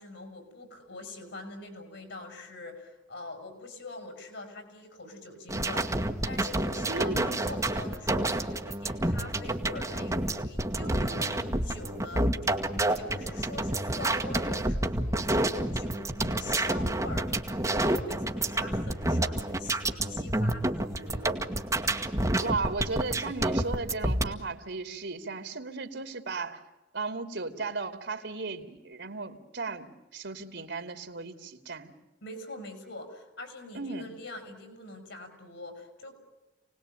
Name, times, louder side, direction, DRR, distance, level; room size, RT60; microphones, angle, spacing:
voice 1, 0.0-12.5 12.9-21.4 32.2-36.1, left 2 dB, 85° left, 7 dB, 7.3 m, -44 dB
sound 1, 5.5-24.3, right 1 dB, 15° right, 1.6 m, -29 dB
voice 2, 6.9-7.5 22.4-26.6 26.9-31.9 33.7-34.1, right 3 dB, 75° right, 8 dB, 2.8 m, -35 dB
28.5 x 19.5 x 9.1 m, 1.1 s
head